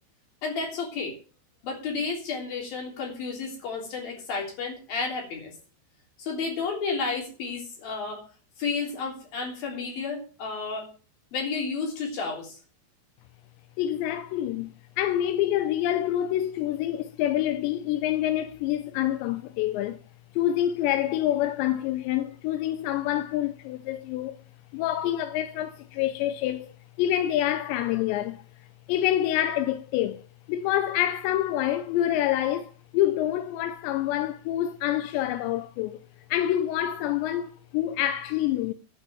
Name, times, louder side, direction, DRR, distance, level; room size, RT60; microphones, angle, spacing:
voice 1, 0.4-1.2 1.6-5.5 6.2-8.2 8.6-10.9 11.3-12.6, left 4 dB, 50° left, 4.9 m, -31 dB
voice 2, 13.8-20.0 20.3-24.4 24.7-28.4 28.9-30.2 30.5-36.0 36.3-38.7, left 12 dB, 80° left, 2.7 m, -27 dB
11.5 x 5.8 x 8.5 m
omnidirectional pair, 5.5 m